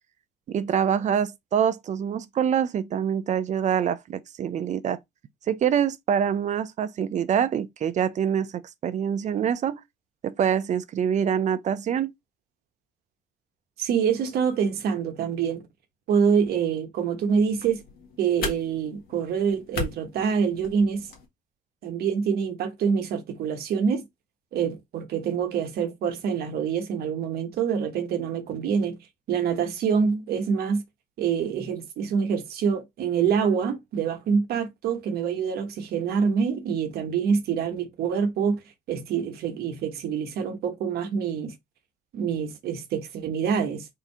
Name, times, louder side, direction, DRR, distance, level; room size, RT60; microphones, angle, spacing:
voice 1, 0.5-5.0 5.5-9.8 10.2-12.1, right 8 dB, 45° right, 0.5 m, -25 dB
voice 2, 13.8-15.7 16.1-17.8 18.2-21.1 21.8-24.0 24.5-29.0 29.3-30.8 31.2-38.6 38.9-41.5 42.1-43.9, right 6 dB, 65° right, 1.2 m, -26 dB
sound 1, 17.3-21.3, left 5 dB, 60° left, 1.5 m, -37 dB
3.7 x 2.7 x 4.6 m
cardioid pair, 110°, 17 cm